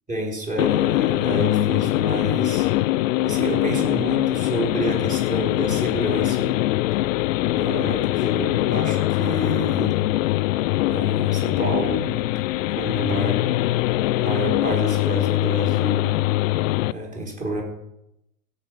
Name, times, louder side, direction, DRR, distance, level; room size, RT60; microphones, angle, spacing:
voice 1, 0.1-2.7 3.2-6.5 7.5-10.0 10.9-12.2 12.8-13.4 14.2-16.1 16.9-17.6, right 1 dB, 20° right, -2 dB, 4.8 m, -29 dB
sound 1, 0.6-16.9, left 17 dB, 65° left, 0.6 m, -22 dB
16.0 x 5.5 x 6.7 m, 0.84 s
hypercardioid pair, 105°, 43 cm